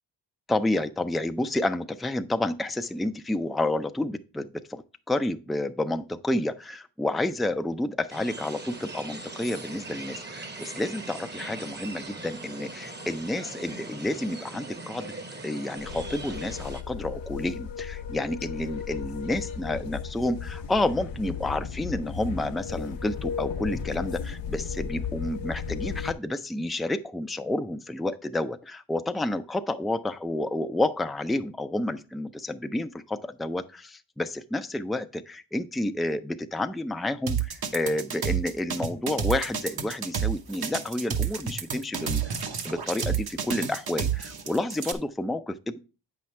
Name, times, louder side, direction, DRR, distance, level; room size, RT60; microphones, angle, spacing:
voice 1, 0.5-15.1 15.4-45.8, left 1 dB, ahead, 0.4 m, -30 dB
sound 1, 8.1-16.8, right 3 dB, 25° right, 0.9 m, -40 dB
sound 2, 15.8-26.1, left 6 dB, 85° left, 0.8 m, -35 dB
sound 3, 37.3-44.9, right 7 dB, 55° right, 1.0 m, -29 dB
8.3 x 5.8 x 3.1 m
cardioid pair, 90°, 44 cm